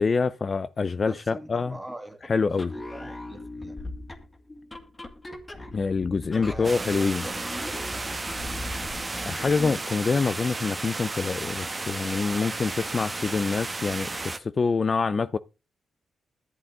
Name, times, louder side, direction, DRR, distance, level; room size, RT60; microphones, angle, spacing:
voice 1, 0.0-1.8 2.2-2.7 5.7-7.2 9.2-15.4, left 4 dB, 45° left, 0.5 m, -26 dB
voice 2, 1.0-2.3 2.7-3.8 6.3-7.8, right 1 dB, 10° right, 2.0 m, -42 dB
sound 1, 2.5-9.8, left 2 dB, 25° left, 1.9 m, -39 dB
sound 2, 6.6-14.4, right 3 dB, 25° right, 1.2 m, -33 dB
11.5 x 7.7 x 3.7 m
cardioid pair, 70°, 0 cm